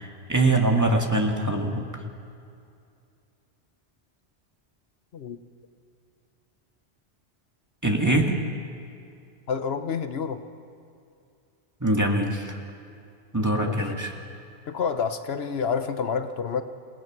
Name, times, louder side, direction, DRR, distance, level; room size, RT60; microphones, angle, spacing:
voice 1, 0.0-1.9 7.8-8.4 11.8-12.6 13.3-14.1, right 2 dB, 15° right, 1 dB, 2.0 m, -23 dB
voice 2, 9.5-10.4 13.6-13.9 14.7-16.6, left 6 dB, 70° left, 9 dB, 1.1 m, -28 dB
28.5 x 18.0 x 6.1 m, 2.5 s
omnidirectional pair, 1.1 m